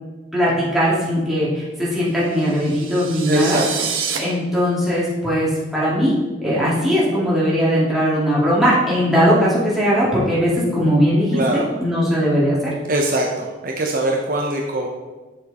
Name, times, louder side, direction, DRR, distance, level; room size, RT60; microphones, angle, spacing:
voice 1, 0.3-3.6 4.1-6.1 6.4-12.7, equal, ahead, -8 dB, 2.7 m, -19 dB
sound 1, 2.3-4.2, right 7 dB, 85° right, 1.3 m, -28 dB
voice 2, 3.3-3.9 11.3-11.7 12.9-14.9, right 1 dB, 45° right, 0 dB, 0.9 m, -22 dB
9.4 x 6.9 x 4.3 m, 1.2 s
head